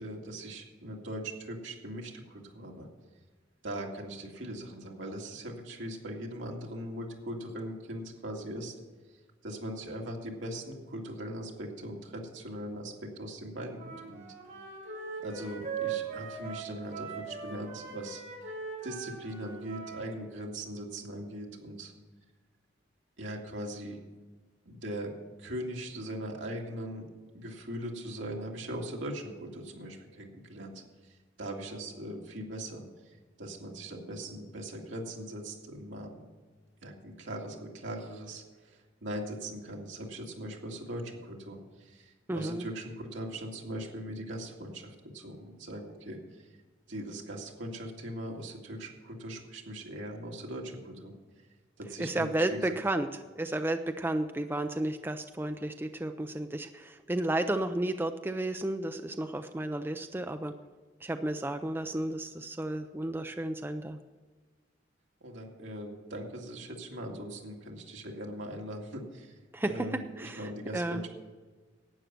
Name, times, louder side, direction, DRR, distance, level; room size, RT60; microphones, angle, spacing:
voice 1, 0.0-2.9 3.6-8.7 9.1-14.2 15.2-18.6 18.8-21.9 23.2-24.0 24.7-25.1 25.4-27.1 27.3-36.3 36.8-46.5 46.9-51.1 51.8-52.7 65.2-71.1, right 1 dB, 80° right, 0 dB, 2.3 m, -40 dB
Wind instrument woodwind instrument, 13.7-20.1, right 6 dB, 45° right, 4.9 m, -40 dB
voice 2, 42.3-42.6 52.0-53.1 53.4-60.5 61.0-64.0 69.5-69.7 70.2-71.0, right 1 dB, 10° right, 7 dB, 0.4 m, -32 dB
12.0 x 9.1 x 6.0 m, 1.4 s
head